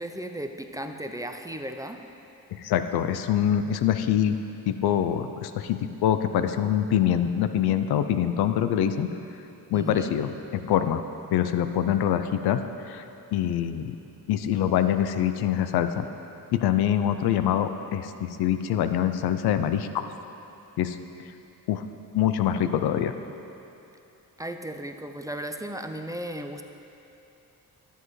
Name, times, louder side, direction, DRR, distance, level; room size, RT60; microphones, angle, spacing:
voice 1, 0.0-2.0 9.7-10.1 24.4-26.6, right 1 dB, 10° right, 5 dB, 0.5 m, -35 dB
voice 2, 2.5-4.4 4.7-9.1 9.7-11.0 11.3-13.0 13.3-14.0 14.3-16.0 16.5-20.1 20.8-21.0 21.7-21.8 22.1-23.1, left 10 dB, 90° left, 10 dB, 0.5 m, -25 dB
13.0 x 7.9 x 3.2 m, 2.9 s
cardioid pair, 65°, 37 cm